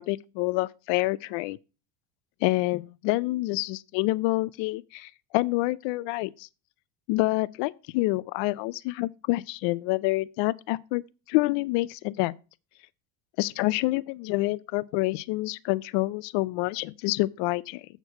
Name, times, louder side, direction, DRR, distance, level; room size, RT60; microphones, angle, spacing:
voice 1, 0.0-1.6 2.4-6.5 7.1-11.0 11.3-12.3 13.4-17.9, left 21 dB, 70° left, 0.5 m, -27 dB
8.0 x 4.6 x 5.6 m
cardioid pair, 125°, 46 cm